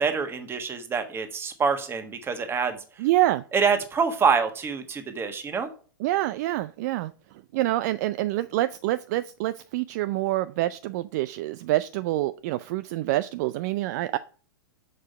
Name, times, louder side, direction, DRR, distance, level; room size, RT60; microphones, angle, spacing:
voice 1, 0.0-3.0 3.5-5.7, right 5 dB, 20° right, 7 dB, 1.3 m, -26 dB
voice 2, 3.0-3.4 6.0-7.1 7.5-14.2, right 16 dB, 45° right, 13 dB, 0.4 m, -26 dB
6.4 x 5.0 x 6.5 m, 0.41 s
figure-of-eight pair, 100°, 12 cm